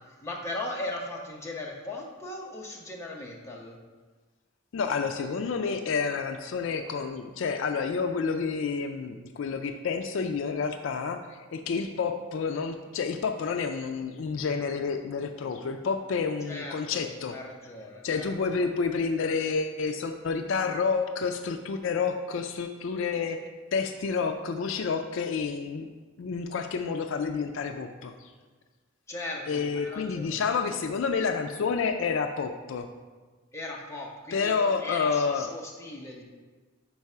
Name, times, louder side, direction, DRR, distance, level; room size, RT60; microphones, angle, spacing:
voice 1, 0.1-3.8 16.5-18.7 29.1-30.4 33.5-36.2, left 2 dB, 15° left, -2 dB, 0.8 m, -38 dB
voice 2, 4.7-17.4 18.0-25.9 26.2-28.3 29.5-32.9 34.3-35.5, left 5 dB, 65° left, 6 dB, 0.4 m, -29 dB
4.7 x 4.7 x 5.5 m, 1.4 s
head